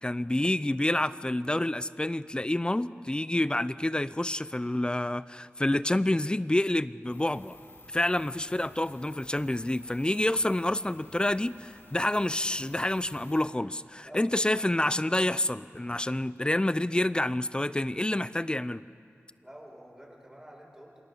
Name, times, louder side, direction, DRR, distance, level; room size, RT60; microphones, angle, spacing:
voice 1, 0.0-7.6 7.9-18.8, left 1 dB, 20° left, 16 dB, 0.6 m, -28 dB
sound 1, 7.1-13.4, left 2 dB, 55° left, 6.2 m, -53 dB
voice 2, 19.4-21.0, equal, 15° right, -3 dB, 7.2 m, -49 dB
28.0 x 24.5 x 7.1 m, 2.4 s
wide cardioid pair, 65°, 5 cm